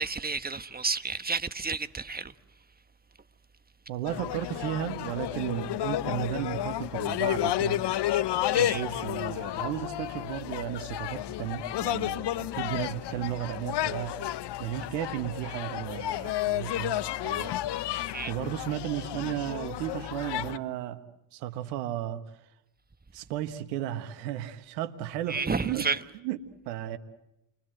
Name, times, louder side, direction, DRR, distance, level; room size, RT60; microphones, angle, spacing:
voice 1, 0.0-2.3 8.5-8.8 18.1-18.3 25.3-26.0, right 4 dB, 20° right, 1.4 m, -31 dB
voice 2, 3.9-7.8 8.5-14.2 14.6-17.0 17.2-21.0 21.3-22.2 23.1-25.9 26.2-26.4 26.6-27.0, right 12 dB, 85° right, 1.5 m, -34 dB
sound 1, 4.1-20.6, left 13 dB, 55° left, 0.9 m, -31 dB
29.0 x 23.0 x 7.9 m
hypercardioid pair, 55°, 50 cm